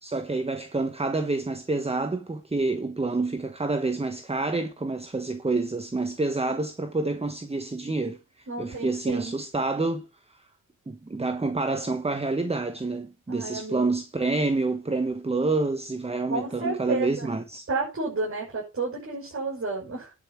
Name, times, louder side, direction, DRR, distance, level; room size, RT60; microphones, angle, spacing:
voice 1, 0.0-10.1 10.9-17.7, right 3 dB, 20° right, 1.2 m, -28 dB
voice 2, 8.5-9.4 11.1-11.2 13.3-13.8 16.3-17.4 17.7-20.1, right 3 dB, 45° right, 6.3 m, -31 dB
11.0 x 5.7 x 5.9 m
cardioid pair, 80°, 32 cm